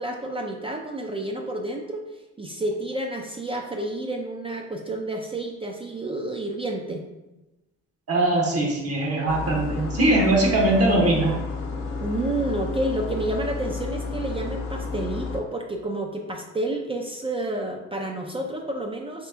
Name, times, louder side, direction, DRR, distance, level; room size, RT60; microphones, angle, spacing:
voice 1, 0.0-2.0 2.4-7.0 12.0-19.3, right 1 dB, 20° right, 1 dB, 0.3 m, -30 dB
voice 2, 8.1-11.4, right 2 dB, 55° right, 0 dB, 0.9 m, -21 dB
sound 1, 9.3-15.4, left 4 dB, 75° left, 0.7 m, -31 dB
3.2 x 2.9 x 3.4 m, 1.0 s
cardioid pair, 90°, 30 cm